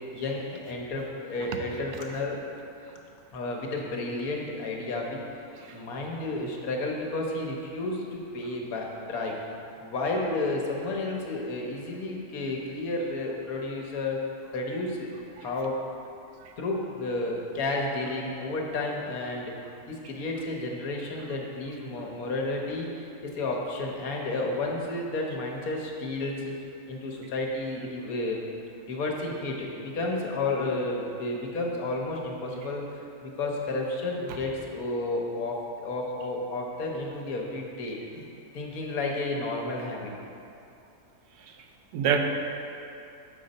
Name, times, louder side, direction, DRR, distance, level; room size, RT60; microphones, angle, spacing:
voice 1, 0.1-2.4 3.3-5.2 5.7-9.4 9.8-14.2 14.5-15.1 15.4-15.8 16.6-19.5 19.9-22.9 23.2-26.6 26.9-28.4 28.9-38.3 38.5-40.1, left 2 dB, 70° left, -1 dB, 1.2 m, -31 dB
voice 2, 5.6-5.8 15.4-15.5 16.4-16.5 34.3-34.4 41.9-42.2, right 8 dB, 80° right, 3 dB, 1.1 m, -27 dB
7.0 x 3.9 x 5.3 m, 2.7 s
omnidirectional pair, 1.7 m